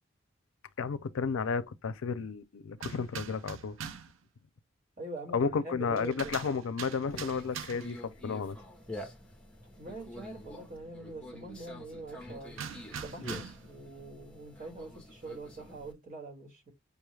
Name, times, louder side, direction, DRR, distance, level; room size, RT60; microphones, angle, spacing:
voice 1, 0.8-3.8 5.3-8.6, left 5 dB, 80° left, 0.5 m, -32 dB
sound 1, 2.8-4.2 6.0-8.0 12.6-13.7, right 7 dB, 70° right, 0.5 m, -42 dB
voice 2, 5.0-6.3 9.8-12.6 13.0-16.7, right 2 dB, 40° right, 1.6 m, -44 dB
Conversation, 7.1-15.9, left 1 dB, 5° left, 0.8 m, -47 dB
5.3 x 2.3 x 3.1 m
head